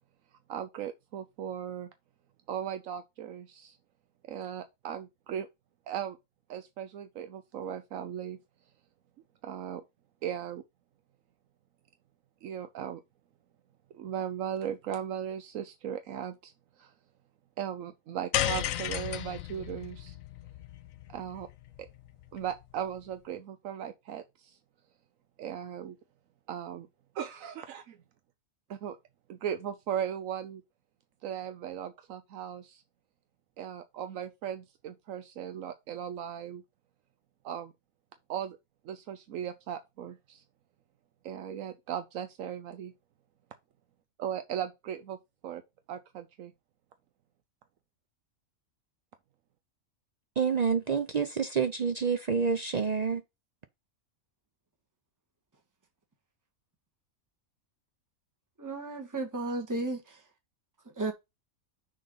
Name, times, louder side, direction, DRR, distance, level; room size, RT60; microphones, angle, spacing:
voice 1, 0.5-1.9 2.5-3.8 4.3-5.5 5.9-6.2 6.5-8.4 9.4-9.8 10.2-10.6 12.4-13.0 13.9-16.5 16.8-16.9 17.6-20.2 21.1-21.5 21.8-21.9 22.3-24.6 25.4-26.0 26.5-26.9 27.1-28.0 28.7-29.0 29.3-30.6 31.2-32.8 33.6-36.6 37.4-37.7 38.3-38.6 38.8-40.4 41.2-42.9 44.2-45.2 45.4-45.6 45.9-46.5, right 9 dB, 80° right, 1.1 m, -37 dB
sound 1, 18.3-22.7, left 12 dB, 85° left, 1.0 m, -34 dB
voice 2, 50.4-53.2, right 6 dB, 55° right, 0.4 m, -28 dB
voice 3, 58.6-60.2 60.8-61.1, right 2 dB, 15° right, 1.5 m, -34 dB
6.5 x 3.9 x 5.5 m
omnidirectional pair, 1.4 m